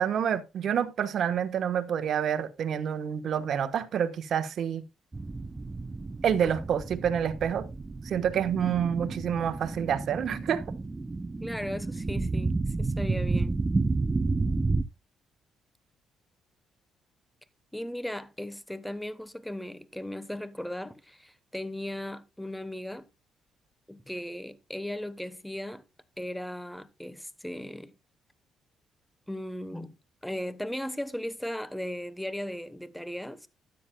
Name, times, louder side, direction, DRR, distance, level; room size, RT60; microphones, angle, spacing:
voice 1, 0.0-4.8 6.2-7.7 8.0-10.6, right 8 dB, 65° right, 1.1 m, -28 dB
sound 1, 5.1-14.8, right 3 dB, 20° right, 0.6 m, -31 dB
voice 2, 11.4-13.6 17.7-23.1 23.9-25.8 26.2-27.9 29.3-30.0 30.2-33.5, left 1 dB, 5° left, 1.0 m, -37 dB
13.0 x 9.1 x 2.2 m
cardioid pair, 90°, 0 cm